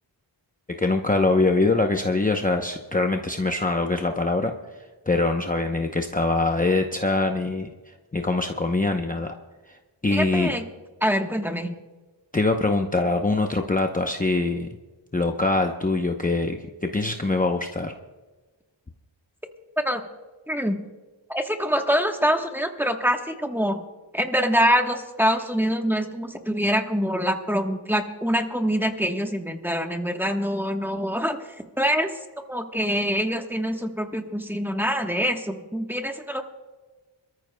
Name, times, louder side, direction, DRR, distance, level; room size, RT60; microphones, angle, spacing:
voice 1, 0.8-4.5 5.1-7.7 8.1-9.4 9.7-9.8 10.0-10.6 12.3-14.7 15.1-18.0, left 3 dB, 20° left, 3 dB, 0.7 m, -23 dB
voice 2, 10.1-10.6 11.0-11.8 19.8-20.0 20.5-20.8 21.3-23.8 24.1-31.4 31.8-32.1 32.5-36.4, equal, 5° right, 4 dB, 1.2 m, -25 dB
26.5 x 13.5 x 2.2 m, 1.2 s
wide cardioid pair, 90°, 45 cm